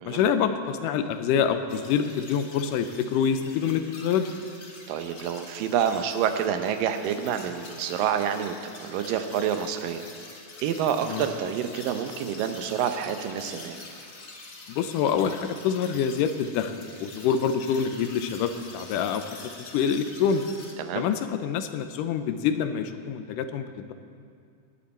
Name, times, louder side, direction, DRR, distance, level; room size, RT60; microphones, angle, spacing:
voice 1, 0.0-4.3 11.1-11.2 14.7-20.5 21.0-23.9, left 7 dB, 80° left, 9 dB, 2.2 m, -26 dB
sound 1, 1.7-20.7, left 3 dB, 45° left, 1.3 m, -45 dB
voice 2, 4.9-10.0 10.6-13.8 20.8-21.0, right 8 dB, 90° right, 7 dB, 2.5 m, -28 dB
18.0 x 11.5 x 4.3 m, 2.3 s
omnidirectional pair, 3.8 m